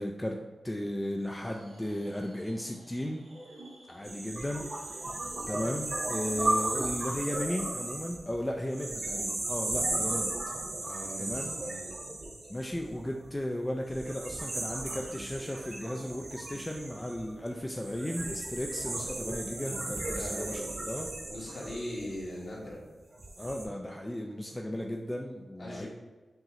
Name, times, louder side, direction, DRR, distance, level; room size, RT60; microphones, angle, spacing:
voice 1, 0.0-3.2 3.9-5.2 5.5-10.3 11.2-11.5 12.5-21.1 23.4-25.9, left 1 dB, 15° left, 1 dB, 0.3 m, -35 dB
sound 1, 1.3-7.0, right 1 dB, 75° right, 1.2 m, -53 dB
voice 2, 3.9-4.3 10.8-11.8 20.1-20.8 21.3-22.8 25.6-25.9, left 1 dB, 55° left, -5 dB, 1.4 m, -41 dB
sound 2, 4.0-13.3 13.9-22.6 23.1-23.6, right 2 dB, 55° right, 0.8 m, -35 dB
5.5 x 2.9 x 2.8 m, 1.2 s
wide cardioid pair, 85°, 0 cm